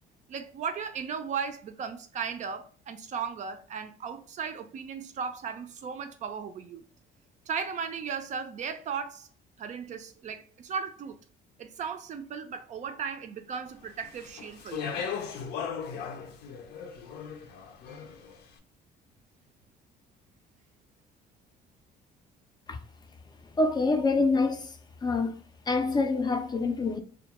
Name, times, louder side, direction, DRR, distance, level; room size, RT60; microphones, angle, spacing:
voice 1, 0.3-6.8 7.5-9.3 9.6-11.2 11.6-15.1, right 6 dB, 45° right, 0.4 m, -36 dB
Speech, 14.0-18.3, left 6 dB, 75° left, 0.5 m, -37 dB
voice 2, 23.6-24.7 25.0-25.3 25.7-27.0, left 3 dB, 25° left, 0.4 m, -26 dB
2.2 x 2.2 x 2.8 m
cardioid pair, 110°, 17 cm